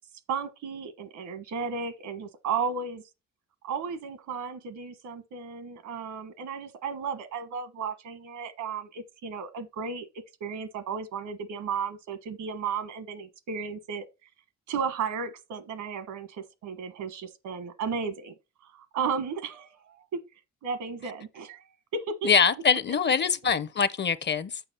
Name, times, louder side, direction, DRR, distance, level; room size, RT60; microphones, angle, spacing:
voice 1, 0.3-3.0 3.6-10.1 10.4-14.1 14.7-18.3 18.7-20.2 20.6-21.6 21.9-22.3, right 5 dB, 80° right, 1.3 m, -34 dB
voice 2, 22.2-24.6, left 6 dB, 35° left, 0.6 m, -24 dB
7.0 x 5.3 x 4.2 m
cardioid pair, 90°, 30 cm